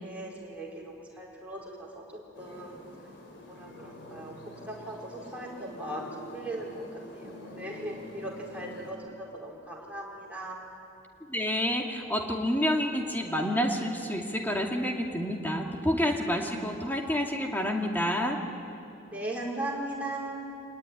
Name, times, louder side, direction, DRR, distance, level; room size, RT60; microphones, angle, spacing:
voice 1, 0.0-2.0 2.4-2.9 3.6-4.3 4.7-10.6 19.1-20.4, right 1 dB, 10° right, -4 dB, 4.8 m, -38 dB
sound 1, 2.3-8.9, equal, 65° left, 4.3 m, -46 dB
voice 2, 11.3-18.4, equal, 10° left, 1 dB, 2.4 m, -29 dB
26.0 x 19.5 x 10.0 m, 2.6 s
head